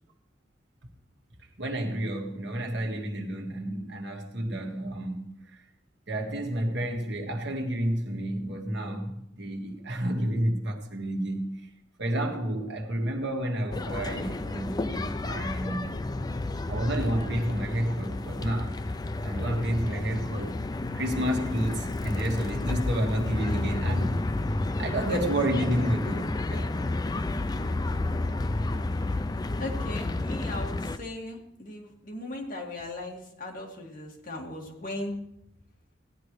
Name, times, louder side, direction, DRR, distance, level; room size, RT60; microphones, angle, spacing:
voice 1, 1.6-5.4 6.1-11.5 12.0-16.0 16.7-18.8 19.2-20.6 20.9-24.2 24.8-27.1, right 1 dB, 70° right, 1.7 m, -30 dB
sound 1, 13.7-31.0, left 2 dB, 20° left, 0.4 m, -31 dB
voice 2, 29.6-35.2, left 1 dB, 50° left, 2.2 m, -38 dB
17.0 x 10.5 x 3.2 m
head